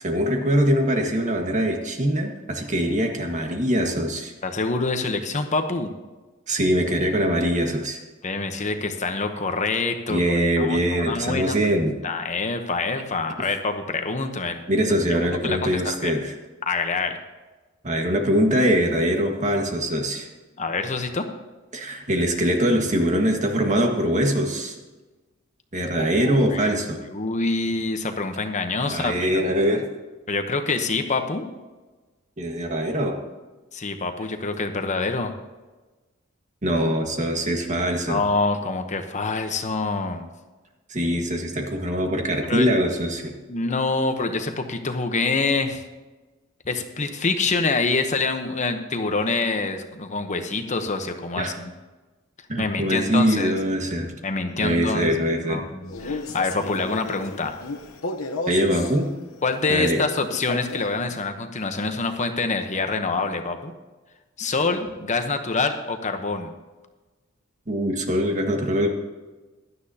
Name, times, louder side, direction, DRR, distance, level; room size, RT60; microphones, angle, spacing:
voice 1, 0.0-4.3 6.5-8.0 10.1-11.9 14.7-16.3 17.8-20.3 21.7-24.7 25.7-27.0 28.9-29.8 32.4-33.2 36.6-38.2 40.9-43.4 51.4-51.5 52.5-54.1 54.6-55.6 58.5-59.1 59.7-60.0 67.7-68.9, equal, 35° right, 2 dB, 1.6 m, -23 dB
voice 2, 4.4-5.9 8.2-10.2 10.6-11.6 12.0-14.6 15.1-15.2 15.4-16.1 16.7-17.2 20.6-21.2 25.9-26.8 27.1-29.4 30.3-31.4 33.7-35.3 38.1-40.3 42.5-42.7 43.5-45.8 46.7-51.7 52.6-53.5 54.2-55.1 55.5-57.6 59.4-63.7 64.4-66.5, left 3 dB, 35° left, 6 dB, 0.9 m, -26 dB
Male speech man speaking, 55.8-59.0 60.3-61.0, left 3 dB, 80° left, 0.9 m, -33 dB
16.5 x 12.0 x 2.8 m, 1.2 s
head